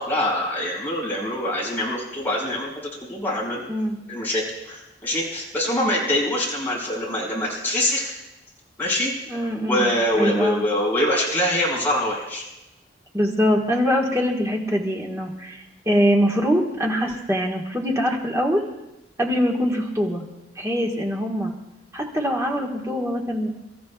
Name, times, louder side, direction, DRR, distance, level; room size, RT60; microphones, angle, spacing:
voice 1, 0.0-2.7 3.1-3.6 4.1-8.1 8.8-12.4, left 1 dB, 10° left, -5 dB, 5.3 m, -24 dB
voice 2, 9.3-9.9 10.2-10.6 13.1-18.6 19.2-20.2 20.6-21.5 21.9-23.5, equal, 15° right, -1 dB, 1.5 m, -23 dB
29.0 x 14.0 x 2.4 m, 0.94 s
head